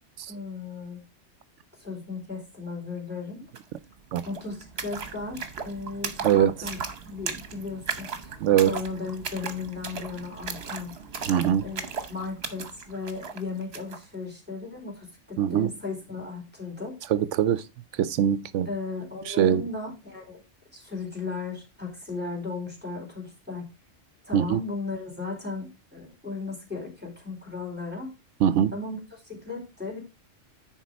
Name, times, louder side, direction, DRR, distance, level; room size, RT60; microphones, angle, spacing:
voice 1, 0.3-1.0 1.8-3.4 4.2-6.8 7.1-8.3 8.6-10.9 11.6-17.0 18.7-20.4 20.7-23.7 24.2-28.1 28.7-29.0 29.2-30.0, left 4 dB, 10° right, 4.0 m, -36 dB
sound 1, 3.5-3.6 3.9-14.0, right 5 dB, 55° right, 1.3 m, -37 dB
voice 2, 8.4-8.7 11.3-11.7 15.4-15.7 17.1-17.7 17.9-18.7 19.3-19.6 24.3-24.6 28.4-28.8, right 10 dB, 75° right, 0.9 m, -22 dB
10.0 x 4.2 x 5.2 m
omnidirectional pair, 1.3 m